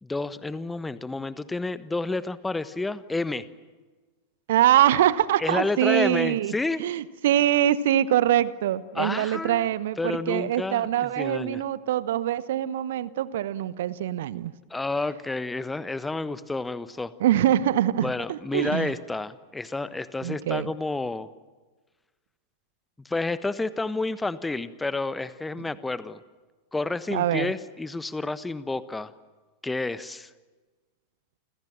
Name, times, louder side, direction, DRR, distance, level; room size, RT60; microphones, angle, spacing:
voice 1, 0.0-3.5 5.4-6.8 8.9-9.7 10.0-11.6 14.7-17.1 18.0-21.3 23.0-26.2 26.7-29.1 29.6-30.3, left 3 dB, 10° left, 15 dB, 1.2 m, -30 dB
voice 2, 4.5-6.5 6.8-14.5 17.2-18.9 20.2-20.7 25.6-25.7 27.1-27.5, right 12 dB, 55° right, 18 dB, 1.0 m, -24 dB
29.0 x 27.0 x 7.5 m, 1.3 s
figure-of-eight pair, 90°, 0 cm